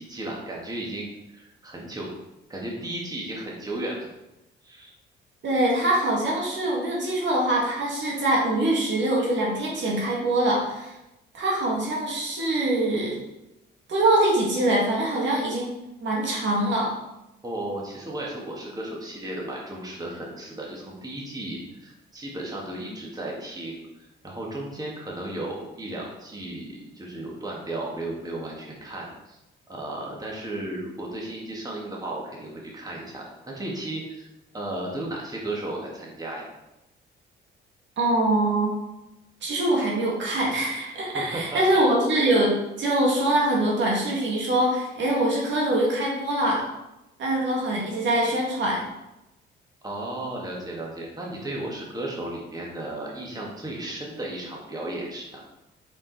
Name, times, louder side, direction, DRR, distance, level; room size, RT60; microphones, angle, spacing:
voice 1, 0.0-2.1 2.5-4.1 4.6-4.9 17.4-29.4 29.7-33.2 33.5-34.3 34.5-36.5 41.1-41.6 49.8-55.4, right 1 dB, 20° right, -3 dB, 1.9 m, -34 dB
voice 2, 5.4-10.9 11.3-13.2 13.9-15.7 16.0-16.9 38.0-38.7 39.4-46.6 47.2-48.8, right 1 dB, 65° right, -3 dB, 2.3 m, -23 dB
7.2 x 4.8 x 4.1 m, 0.94 s
cardioid pair, 90°, 20 cm